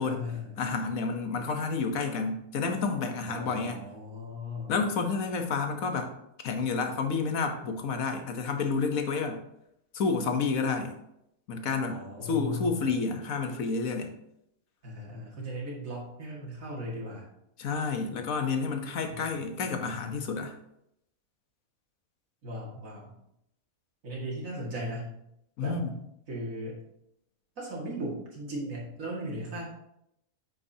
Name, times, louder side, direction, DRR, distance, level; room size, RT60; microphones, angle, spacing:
voice 1, 0.0-0.6 3.3-4.8 11.9-12.9 14.8-17.3 19.1-19.2 19.9-20.2 22.4-23.1 24.0-25.2 25.6-25.8 26.3-26.8 27.6-29.6, equal, 70° right, -4 dB, 2.4 m, -37 dB
voice 2, 0.6-3.8 4.7-6.1 6.4-9.4 9.9-10.9 11.5-14.1 17.6-20.5 25.6-25.9, left 4 dB, 75° left, 5 dB, 1.4 m, -30 dB
9.2 x 6.2 x 2.8 m, 0.79 s
omnidirectional pair, 1.5 m